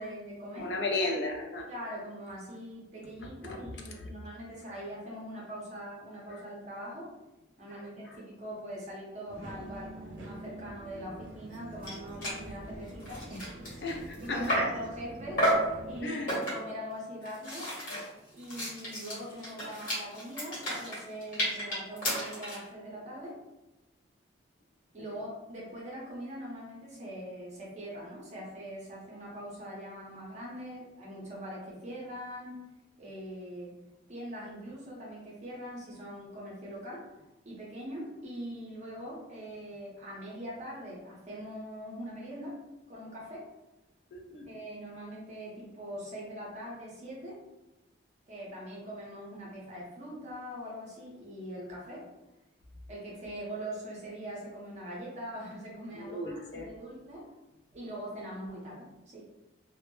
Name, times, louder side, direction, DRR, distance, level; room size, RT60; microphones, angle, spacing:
voice 1, 0.0-0.7 1.7-7.1 7.6-13.8 14.2-15.5 15.8-16.2 16.5-17.7 18.3-23.3 24.9-32.6 33.0-33.7 34.1-37.1 37.4-42.6 42.9-43.5 44.5-47.4 48.3-52.1 52.9-57.3 57.7-59.3, equal, 35° right, -5 dB, 0.6 m, -42 dB
voice 2, 0.6-1.7 3.4-3.6 6.3-6.4 7.7-8.2 13.8-14.6 16.0-16.4 17.9-18.0 44.1-44.5 55.9-56.7, left 2 dB, 65° left, 2 dB, 0.4 m, -35 dB
sound 1, 9.3-16.0, right 1 dB, 85° right, 0.5 m, -46 dB
sound 2, 11.5-11.6 11.8-12.0 12.2-12.4 12.9-14.8 15.4-15.7 16.3-16.8 17.2-22.7, equal, 45° left, 1.1 m, -32 dB
2.1 x 2.0 x 3.0 m, 0.99 s
head